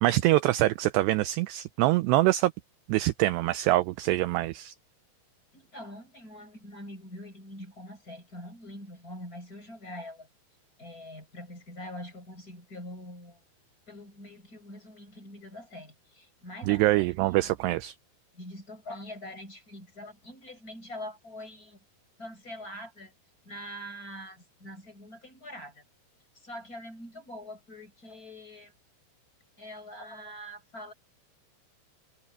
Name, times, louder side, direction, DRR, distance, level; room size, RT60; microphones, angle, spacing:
voice 1, 0.0-2.5 2.9-4.7 16.6-18.0, right 17 dB, 80° right, 2.5 m, -24 dB
voice 2, 5.5-10.3 10.8-13.4 13.9-17.5 18.3-21.8 22.2-23.1 23.4-25.8 26.3-28.7 29.6-30.9, left 1 dB, 15° left, 7.8 m, -44 dB
omnidirectional pair, 5.4 m